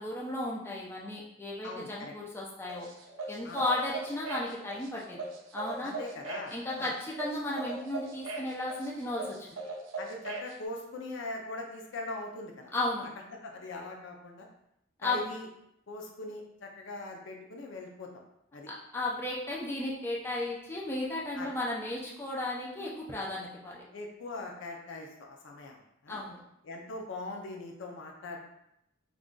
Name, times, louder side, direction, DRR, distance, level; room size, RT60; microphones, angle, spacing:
voice 1, 0.0-2.9 3.3-5.2 5.5-5.9 6.5-9.4 12.7-13.1 15.0-15.2 18.7-23.8 26.1-26.4, left 2 dB, 10° left, -5 dB, 0.4 m, -34 dB
voice 2, 1.6-2.1 3.4-3.6 5.8-6.9 10.0-12.7 13.3-14.5 15.0-15.5 15.9-18.1 18.5-18.7 21.4-21.5 23.9-26.2 26.6-28.5, left 2 dB, 65° left, 2 dB, 0.5 m, -41 dB
sound 1, 2.7-10.5, right 3 dB, 80° right, 0.5 m, -40 dB
2.4 x 2.3 x 3.7 m, 0.80 s
head